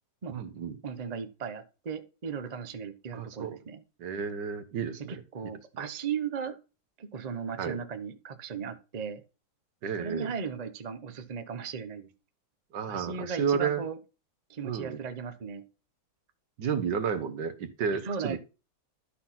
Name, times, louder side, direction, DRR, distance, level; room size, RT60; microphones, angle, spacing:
voice 1, 0.3-0.8 3.1-3.6 4.0-5.2 5.8-5.9 7.6-7.8 9.8-10.3 12.7-13.8 14.6-15.0 16.6-18.4, right 7 dB, 70° right, 10 dB, 1.6 m, -31 dB
voice 2, 0.8-3.8 5.1-6.6 7.0-9.2 10.0-12.1 12.9-14.0 14.5-15.6 18.0-18.4, right 6 dB, 40° right, 9 dB, 0.6 m, -36 dB
12.0 x 4.0 x 5.8 m, 0.32 s
omnidirectional pair, 2.0 m